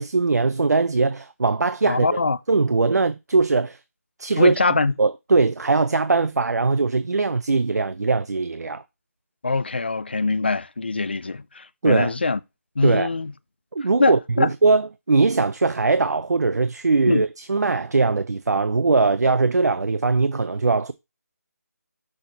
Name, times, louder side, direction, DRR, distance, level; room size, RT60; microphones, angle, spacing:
voice 1, 0.0-2.2 2.5-3.8 4.2-4.6 5.0-8.8 11.8-12.1 12.8-13.1 13.7-20.9, right 3 dB, 75° right, 0.6 m, -20 dB
voice 2, 1.9-2.4 4.4-4.9 9.4-12.4 12.8-13.3 14.0-14.5 17.1-17.2, left 3 dB, 40° left, 0.4 m, -23 dB
6.3 x 4.2 x 5.1 m
figure-of-eight pair, 180°, 9 cm